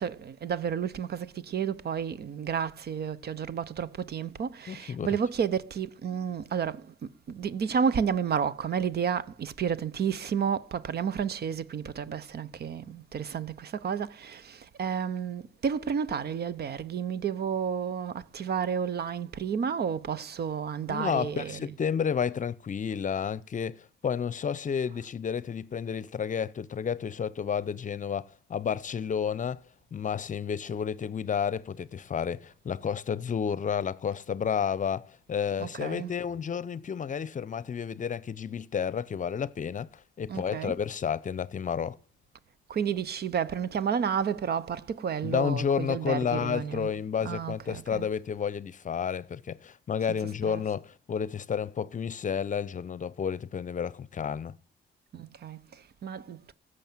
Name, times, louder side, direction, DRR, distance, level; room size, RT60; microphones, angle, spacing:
voice 1, 0.0-21.7 35.6-36.1 40.3-40.8 42.7-46.9 47.2-48.1 50.4-50.6 55.1-56.5, right 7 dB, 55° right, 1.0 m, -31 dB
voice 2, 4.7-5.1 20.9-29.6 29.9-39.9 40.2-42.0 45.2-54.5, left 7 dB, 40° left, 0.7 m, -31 dB
15.0 x 6.6 x 9.0 m
cardioid pair, 90°, 20 cm